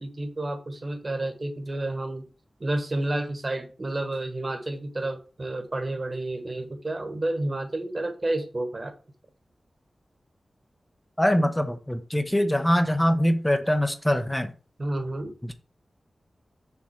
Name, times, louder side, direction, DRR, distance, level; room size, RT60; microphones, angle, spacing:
voice 1, 0.0-2.3 2.6-8.9 14.8-15.3, right 2 dB, 35° right, 5 dB, 1.5 m, -30 dB
voice 2, 11.2-14.5 15.4-15.5, equal, 10° left, 7 dB, 0.9 m, -23 dB
7.1 x 4.2 x 6.5 m, 0.36 s
wide cardioid pair, 120°, 0 cm